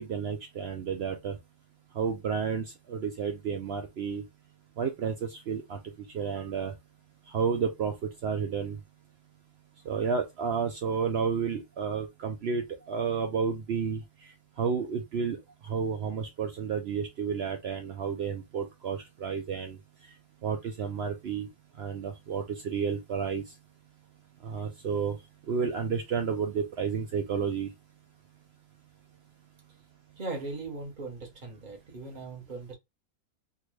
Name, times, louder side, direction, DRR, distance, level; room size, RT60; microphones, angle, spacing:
voice 1, 0.0-1.4 1.9-4.2 4.8-5.8 6.1-6.8 7.3-8.8 9.9-14.0 14.6-15.4 15.6-19.8 20.4-21.5 21.8-23.4 24.4-25.2 25.5-27.7, right 6 dB, 75° right, 0.5 m, -31 dB
voice 2, 30.2-32.7, right 3 dB, 35° right, 1.0 m, -39 dB
3.6 x 2.2 x 3.1 m
omnidirectional pair, 1.7 m